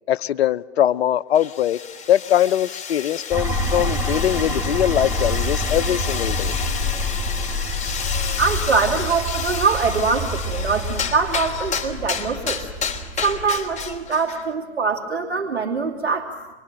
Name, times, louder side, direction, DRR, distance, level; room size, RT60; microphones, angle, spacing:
voice 1, 0.1-1.8 2.1-6.5, left 11 dB, 75° left, 0.9 m, -21 dB
sound 1, 1.3-14.5, left 6 dB, 20° left, 3.4 m, -31 dB
sound 2, 3.3-14.0, left 1 dB, 5° right, 5.0 m, -27 dB
voice 2, 8.4-12.6 13.2-16.3, right 4 dB, 90° right, 3.3 m, -23 dB
27.0 x 23.5 x 9.0 m
hypercardioid pair, 105°, 32 cm